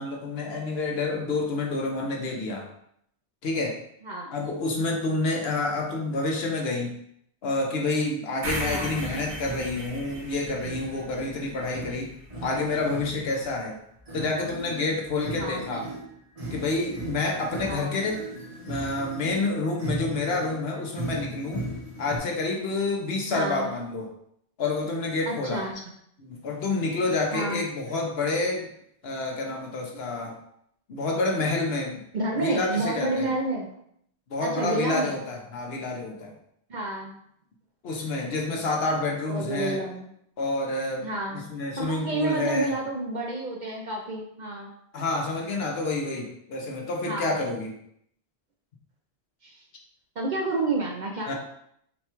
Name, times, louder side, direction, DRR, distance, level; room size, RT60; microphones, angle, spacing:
voice 1, 0.0-2.7 3.4-3.8 4.3-7.0 7.4-12.1 12.4-13.8 14.1-15.9 16.5-18.2 18.6-21.6 22.0-24.1 24.6-25.6 26.2-28.7 29.0-30.3 30.9-32.0 32.4-33.3 34.3-36.3 37.8-39.8 40.4-41.1 41.5-42.7 44.9-47.7 51.3-51.4, left 3 dB, 65° left, 0 dB, 1.0 m, -28 dB
voice 2, 4.0-4.3 8.6-9.1 15.3-15.7 17.6-18.0 23.3-23.7 25.3-25.7 27.3-27.6 29.9-30.0 32.1-33.7 34.4-35.2 36.7-37.1 39.3-40.1 41.0-41.4 41.8-44.7 47.0-47.4 49.4-49.6 50.2-51.3, right 2 dB, 50° right, 0 dB, 0.6 m, -30 dB
sound 1, 8.4-12.6, right 1 dB, 80° right, 1.3 m, -36 dB
sound 2, 9.1-13.5 13.9-22.2, right 1 dB, 35° right, 1.1 m, -38 dB
4.1 x 2.3 x 4.4 m, 0.71 s
omnidirectional pair, 1.1 m